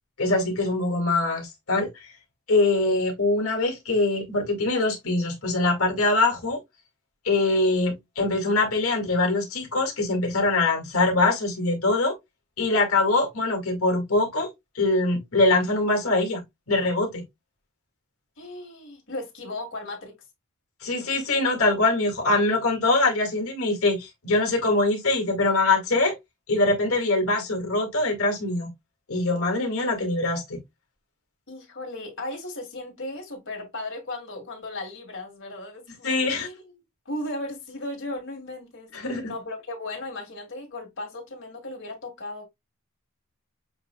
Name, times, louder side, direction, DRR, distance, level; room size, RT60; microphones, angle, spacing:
voice 1, 0.2-1.9 2.5-6.6 7.2-12.2 12.6-16.4 16.7-17.2 20.8-26.2 26.5-28.7 29.1-30.6 36.0-36.5 38.9-39.3, left 2 dB, 80° left, 2.1 m, -23 dB
voice 2, 18.4-20.2 31.5-36.8 37.1-38.9 39.2-42.5, left 2 dB, 60° left, 2.7 m, -36 dB
7.7 x 3.0 x 2.3 m
head